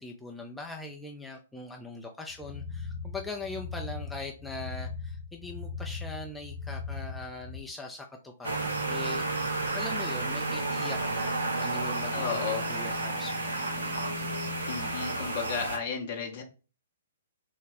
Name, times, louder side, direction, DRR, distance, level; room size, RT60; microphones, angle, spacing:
voice 1, 0.0-14.0, left 2 dB, 5° left, 1 dB, 0.4 m, -41 dB
sound 1, 2.4-7.6, left 4 dB, 40° right, 1.5 m, -39 dB
sound 2, 8.4-15.8, right 2 dB, 70° right, 0.8 m, -31 dB
voice 2, 12.1-12.6 14.7-16.4, left 6 dB, 40° left, 1 dB, 0.7 m, -33 dB
3.4 x 2.1 x 4.0 m, 0.35 s
figure-of-eight pair, 115°, 0 cm